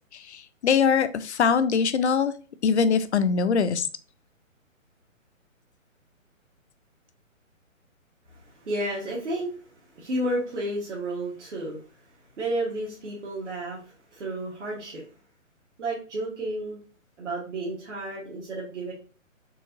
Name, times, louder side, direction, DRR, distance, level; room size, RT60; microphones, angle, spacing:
voice 1, 0.1-2.3 2.6-3.9, left 6 dB, 55° left, 12 dB, 0.5 m, -22 dB
voice 2, 8.3-11.8 12.4-15.0 15.8-16.8 17.2-18.9, right 1 dB, 60° right, -5 dB, 1.4 m, -32 dB
4.6 x 3.4 x 2.6 m, 0.38 s
hypercardioid pair, 170°, 40 cm